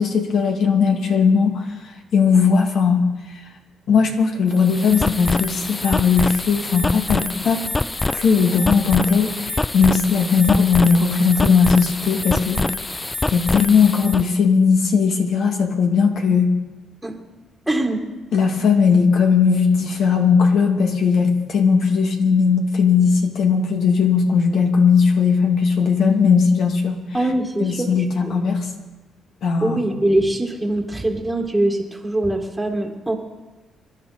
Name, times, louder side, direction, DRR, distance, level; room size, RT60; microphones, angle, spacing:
voice 1, 0.0-3.4 3.9-7.7 8.1-12.6 13.3-16.5 18.3-27.0 27.6-28.7 29.4-29.8, left 5 dB, 70° left, 3 dB, 2.5 m, -18 dB
sound 1, 4.5-14.3, left 2 dB, 20° left, 0.5 m, -25 dB
voice 2, 17.7-18.1 27.1-27.9 28.2-28.3 29.6-33.2, right 1 dB, 5° right, 0 dB, 2.0 m, -22 dB
26.0 x 12.0 x 4.3 m, 1.2 s
cardioid pair, 90°, 0 cm